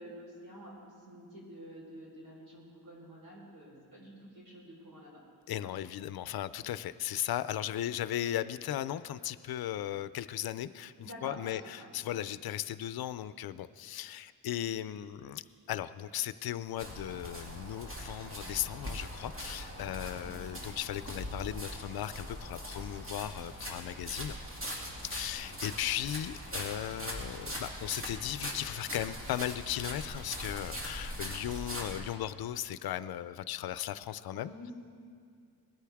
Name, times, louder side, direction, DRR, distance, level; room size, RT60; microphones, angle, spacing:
voice 1, 0.0-5.2 11.0-11.9 20.2-20.6 25.3-25.8 34.3-34.7, equal, 70° right, -4 dB, 4.3 m, -49 dB
voice 2, 5.5-15.4 15.7-24.4 25.0-34.7, left 12 dB, 80° left, 14 dB, 0.5 m, -37 dB
sound 1, 16.8-32.0, equal, 35° right, 2.4 m, -41 dB
20.0 x 13.0 x 3.5 m, 2.2 s
wide cardioid pair, 135°, 37 cm